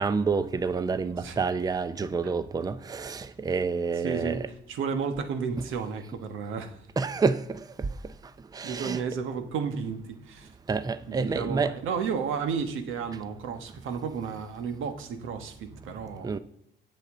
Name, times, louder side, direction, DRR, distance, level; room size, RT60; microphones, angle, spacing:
voice 1, 0.0-4.5 7.0-7.9 8.5-9.0 10.7-11.7 16.2-16.4, right 4 dB, 20° right, 0.5 m, -28 dB
voice 2, 4.0-4.4 4.7-6.8 8.6-10.5 11.1-16.4, right 6 dB, 85° right, 1.2 m, -32 dB
18.0 x 6.8 x 3.7 m
cardioid pair, 90°, 20 cm